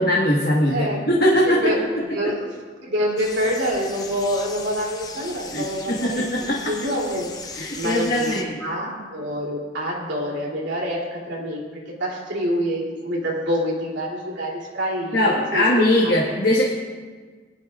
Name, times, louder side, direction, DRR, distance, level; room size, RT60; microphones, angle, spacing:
voice 1, 0.0-1.7 2.2-2.3 5.5-6.7 7.5-8.6 15.1-16.6, left 1 dB, 55° left, -4 dB, 1.5 m, -21 dB
voice 2, 0.7-1.0 1.5-1.8 2.1-2.5 2.8-7.3 7.8-16.2, equal, 75° right, -2 dB, 2.9 m, -26 dB
sound 1, 3.2-8.4, left 4 dB, 20° left, 0.8 m, -38 dB
19.5 x 11.5 x 2.4 m, 1.5 s
head